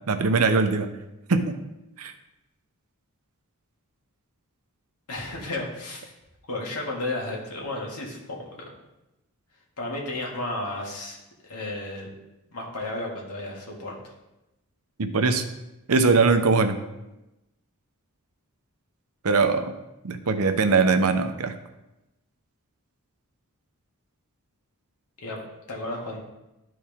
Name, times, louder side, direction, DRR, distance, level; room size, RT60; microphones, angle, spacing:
voice 1, 0.1-1.0 1.3-1.6 2.0-2.1 15.0-15.5 15.9-16.8 19.2-19.8 20.0-21.5, right 4 dB, 70° right, 8 dB, 0.7 m, -21 dB
voice 2, 5.1-6.1 6.5-8.7 9.8-11.2 11.4-12.1 12.5-14.1 25.2-26.2, left 2 dB, 85° left, -2 dB, 2.0 m, -33 dB
12.5 x 4.7 x 3.6 m, 0.97 s
head